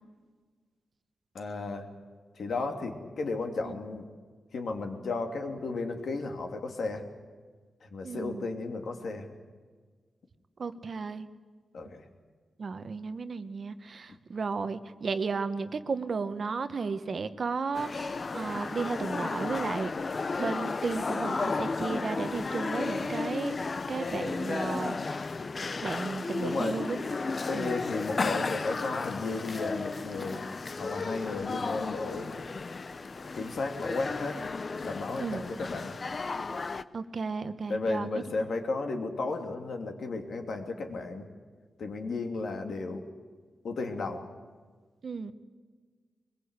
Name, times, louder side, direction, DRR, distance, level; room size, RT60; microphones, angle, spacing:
voice 1, 1.3-1.9 2.3-4.1 4.5-7.0 7.8-9.3 11.7-12.0 26.4-26.8 27.5-30.4 30.8-32.3 33.3-34.4 34.8-36.0 37.7-41.3 41.8-43.1 43.6-44.2, left 3 dB, 60° left, 4 dB, 2.8 m, -34 dB
voice 2, 8.0-8.5 10.6-11.3 12.6-19.9 20.4-23.6 23.9-25.2 25.8-27.0 27.5-27.7 35.2-35.4 36.9-38.1 45.0-45.3, right 4 dB, 45° right, 11 dB, 1.0 m, -34 dB
sound 1, 17.7-36.8, left 4 dB, 35° left, 0.7 m, -34 dB
23.0 x 21.5 x 8.2 m, 1.5 s
wide cardioid pair, 145°, 0 cm